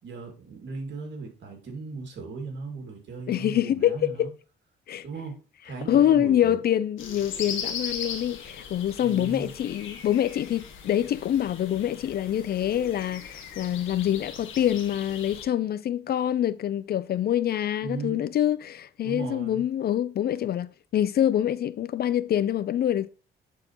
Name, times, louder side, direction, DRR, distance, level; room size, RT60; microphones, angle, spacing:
voice 1, 0.0-4.3 5.0-5.4 5.6-6.6 9.0-9.5 17.8-18.3 19.0-19.6, right 4 dB, 65° right, 2.5 m, -37 dB
voice 2, 3.3-4.3 4.9-5.0 5.9-23.1, left 11 dB, 55° left, 0.4 m, -25 dB
sound 1, 7.0-15.4, left 6 dB, 80° left, 1.6 m, -39 dB
9.7 x 4.6 x 3.0 m
cardioid pair, 90°, 20 cm